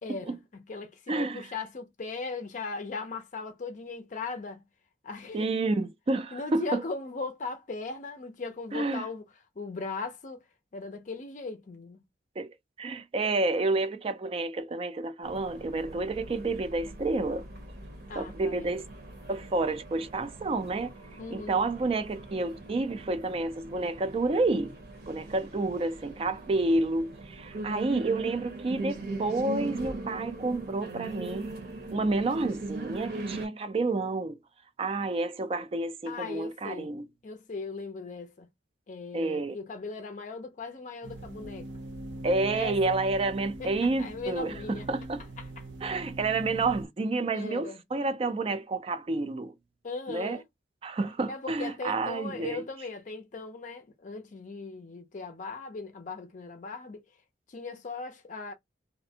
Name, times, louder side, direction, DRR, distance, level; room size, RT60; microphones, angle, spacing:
voice 1, 0.0-4.6 5.0-5.5 6.3-9.2 9.6-12.0 18.1-18.8 21.2-21.6 36.1-36.9 37.2-38.5 38.9-41.7 42.3-43.0 43.6-44.9 45.4-45.5 47.3-47.8 49.8-50.4 51.3-57.0 57.5-58.5, left 4 dB, 45° left, 0.4 m, -38 dB
voice 2, 1.1-1.4 5.3-6.8 8.7-9.0 12.4-17.5 18.2-18.9 19.3-20.9 21.3-24.8 25.1-31.5 31.9-34.4 34.8-37.0 39.1-39.6 42.2-45.2 45.8-49.5 50.1-50.4 50.8-52.6, right 3 dB, 30° right, 0.3 m, -29 dB
sound 1, 15.2-33.5, right 2 dB, 55° right, 0.9 m, -40 dB
sound 2, 41.0-46.9, right 2 dB, 80° right, 0.6 m, -42 dB
2.4 x 2.1 x 2.7 m
head